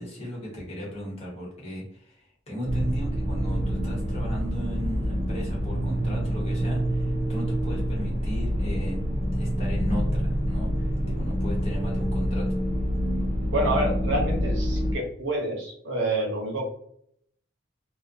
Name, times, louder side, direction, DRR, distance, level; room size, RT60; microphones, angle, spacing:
voice 1, 0.0-9.0 9.3-12.5, equal, 30° left, -4 dB, 1.0 m, -36 dB
sound 1, 2.6-15.0, equal, 30° right, 0.4 m, -27 dB
voice 2, 13.5-16.6, right 1 dB, 80° right, 0 dB, 0.7 m, -28 dB
2.4 x 2.2 x 2.5 m, 0.69 s
head